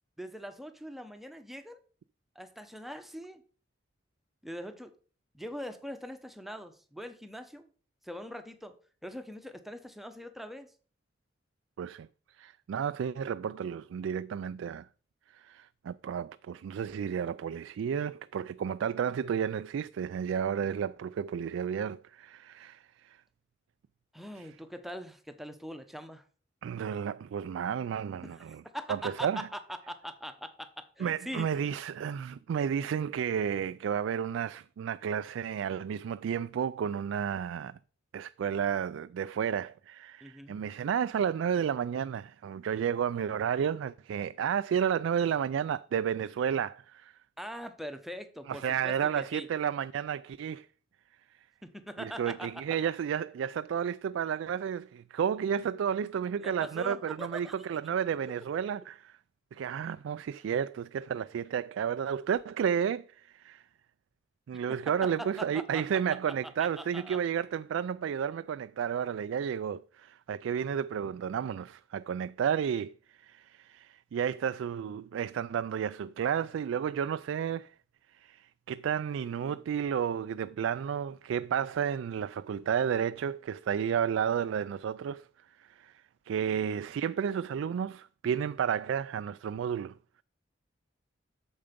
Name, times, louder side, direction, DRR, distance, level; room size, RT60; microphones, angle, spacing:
voice 1, 0.2-1.8 2.3-3.4 4.4-4.9 5.3-7.7 8.0-8.7 9.0-10.7 20.6-20.7 24.1-26.2 28.2-28.4 28.7-30.7 31.0-31.6 40.2-40.6 47.4-49.5 51.6-52.6 56.4-57.5 64.7-65.8 66.6-67.2 86.5-86.6, equal, ahead, 0.9 m, -42 dB
voice 2, 12.4-14.9 15.3-23.2 26.6-28.6 28.9-29.5 31.0-37.8 38.1-47.1 48.5-50.7 52.0-58.9 59.5-63.6 64.5-72.9 73.2-77.7 78.2-85.3 85.7-85.9 86.3-89.9, right 8 dB, 85° right, 0.3 m, -32 dB
8.7 x 6.9 x 5.2 m
head